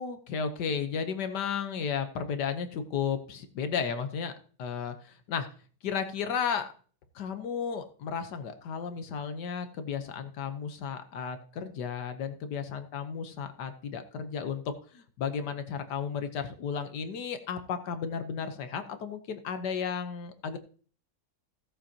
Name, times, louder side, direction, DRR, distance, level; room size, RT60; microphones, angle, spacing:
voice 1, 0.0-4.3 4.6-5.5 5.8-6.7 7.1-20.6, left 6 dB, 90° left, 9 dB, 1.6 m, -34 dB
16.5 x 7.5 x 2.8 m, 0.42 s
omnidirectional pair, 1.7 m